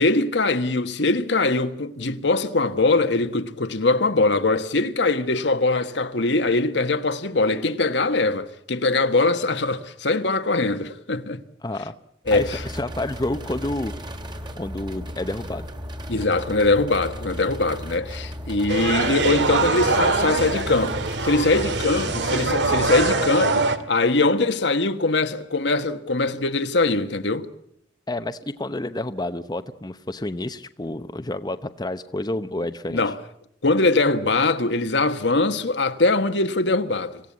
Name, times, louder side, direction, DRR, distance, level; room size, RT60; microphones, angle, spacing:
voice 1, 0.0-11.4 12.3-12.6 16.1-27.5 32.9-33.2 33.6-37.2, left 3 dB, 70° left, 1.4 m, -22 dB
voice 2, 11.6-11.9 12.3-13.9 14.6-15.7 28.1-33.0, left 1 dB, 20° left, 0.9 m, -29 dB
sound 1, 12.2-23.2, equal, 25° right, 2.1 m, -35 dB
sound 2, 18.7-23.8, right 3 dB, 70° right, 1.9 m, -23 dB
26.5 x 16.0 x 8.5 m
head